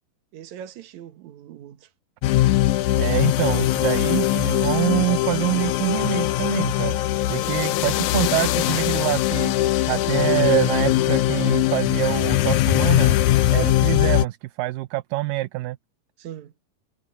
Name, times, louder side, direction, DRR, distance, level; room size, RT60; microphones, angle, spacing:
voice 1, 0.3-1.9 7.4-7.8 16.2-16.5, right 10 dB, 60° right, 2.4 m, -41 dB
sound 1, 2.2-14.3, left 14 dB, 80° left, 1.8 m, -21 dB
voice 2, 3.0-7.0 7.3-9.6 9.9-13.2 13.5-15.8, right 19 dB, 80° right, 2.1 m, -25 dB
omnidirectional pair, 4.2 m